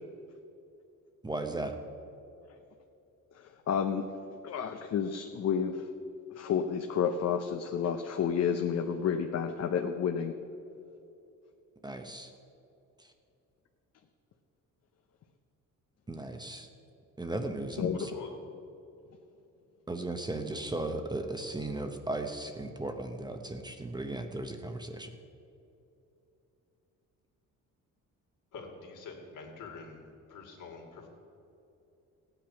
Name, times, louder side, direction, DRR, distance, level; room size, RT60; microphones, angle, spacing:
voice 1, 1.2-1.8 11.8-12.3 13.0-13.1 16.1-16.7 17.2-18.1 19.9-25.1, right 2 dB, 15° right, 5 dB, 0.8 m, -36 dB
voice 2, 3.3-4.0 4.4-5.9 6.4-10.3 17.8-18.1, left 7 dB, 50° left, 5 dB, 0.7 m, -30 dB
voice 3, 17.9-18.3 28.5-30.0 30.3-31.1, left 5 dB, 70° left, 1 dB, 2.6 m, -45 dB
16.0 x 9.1 x 5.9 m, 2.8 s
cardioid pair, 135°, 32 cm